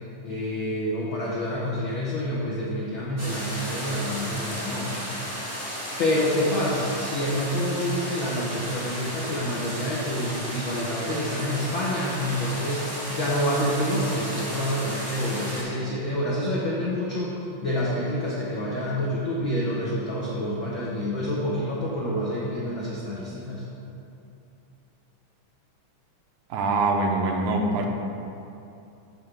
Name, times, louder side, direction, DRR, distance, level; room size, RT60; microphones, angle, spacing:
voice 1, 0.2-5.2 6.0-23.6, equal, 80° left, -6 dB, 1.1 m, -28 dB
sound 1, 3.2-15.6, equal, 15° right, 0.5 m, -34 dB
voice 2, 26.5-27.9, right 2 dB, 80° right, 2 dB, 2.1 m, -24 dB
9.0 x 3.3 x 5.9 m, 2.7 s
omnidirectional pair, 3.5 m